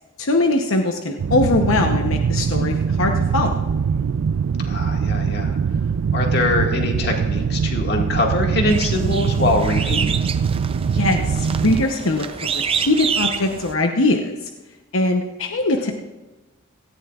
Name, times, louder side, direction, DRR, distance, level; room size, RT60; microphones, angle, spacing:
voice 1, 0.2-3.6 10.9-14.3 14.9-15.9, left 2 dB, 90° left, 4 dB, 0.9 m, -21 dB
sound 1, 1.2-11.9, right 6 dB, 85° right, 0.4 m, -22 dB
voice 2, 4.6-5.6 6.1-10.1, left 2 dB, 55° left, 1 dB, 1.9 m, -23 dB
sound 2, 8.7-13.7, right 6 dB, 25° right, 0.5 m, -28 dB
17.5 x 14.5 x 2.4 m, 1.1 s
head